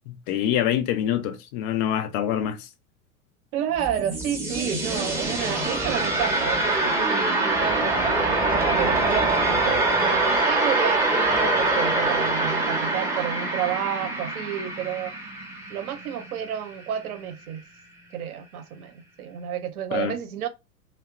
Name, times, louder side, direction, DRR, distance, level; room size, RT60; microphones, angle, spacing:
voice 1, 0.1-2.7 19.9-20.2, left 10 dB, 40° left, 0.5 m, -25 dB
voice 2, 3.5-15.1 15.7-17.6 18.1-20.5, right 9 dB, 70° right, 0.7 m, -31 dB
sound 1, 3.6-16.5, right 2 dB, 5° right, 0.6 m, -24 dB
2.7 x 2.1 x 2.3 m
hypercardioid pair, 100°, 46 cm